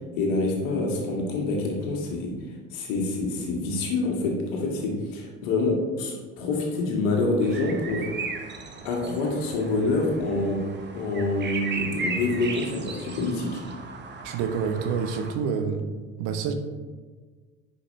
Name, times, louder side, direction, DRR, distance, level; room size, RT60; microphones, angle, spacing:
voice 1, 0.2-2.3 2.7-8.1 8.8-10.6 10.9-13.6, left 2 dB, 60° left, 0 dB, 1.9 m, -26 dB
sound 1, 7.4-15.3, right 4 dB, 30° right, 1.0 m, -36 dB
voice 2, 14.2-15.9 16.2-16.5, right 6 dB, 55° right, 6 dB, 1.0 m, -27 dB
9.5 x 5.7 x 3.2 m, 1.4 s
figure-of-eight pair, 65°, 38 cm